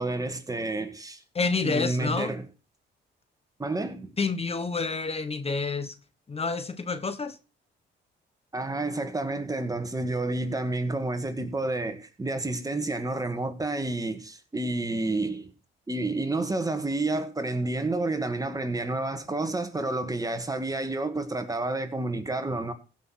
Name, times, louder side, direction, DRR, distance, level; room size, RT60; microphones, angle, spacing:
voice 1, 0.0-1.2 1.6-2.5 3.6-4.1 8.5-15.5 15.9-22.7, right 2 dB, 15° right, 1.9 m, -30 dB
voice 2, 1.3-2.3 4.2-5.9 6.3-7.4, left 4 dB, 30° left, 1.3 m, -28 dB
15.5 x 6.1 x 6.4 m
cardioid pair, 90°, 20 cm